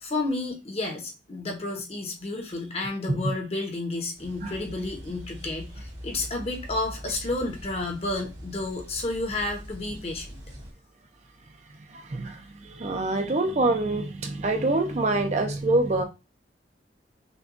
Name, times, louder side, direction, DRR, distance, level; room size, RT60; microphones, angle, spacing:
voice 1, 0.0-10.4, left 2 dB, 35° left, 0.9 m, -31 dB
sound 1, 4.2-10.7, equal, 80° right, 1.6 m, -42 dB
voice 2, 11.9-16.0, right 2 dB, 40° right, 0.5 m, -25 dB
5.9 x 2.3 x 2.5 m
head